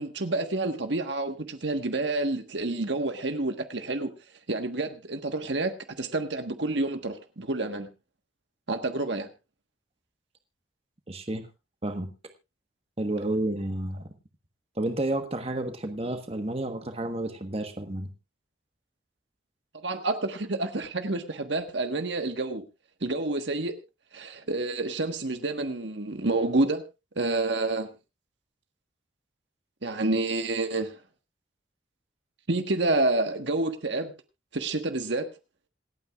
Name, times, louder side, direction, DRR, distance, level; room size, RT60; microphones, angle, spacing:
voice 1, 0.0-4.1 4.5-7.9 8.7-9.3 19.7-22.6 23.0-23.8 24.1-26.8 27.1-27.9 29.8-30.9 32.5-34.1 34.5-35.3, right 2 dB, 70° right, 7 dB, 1.4 m, -28 dB
voice 2, 11.1-11.5 11.8-12.1 13.0-14.1 14.8-18.1, right 1 dB, 30° right, 7 dB, 1.3 m, -31 dB
27.0 x 9.0 x 2.4 m, 0.27 s
head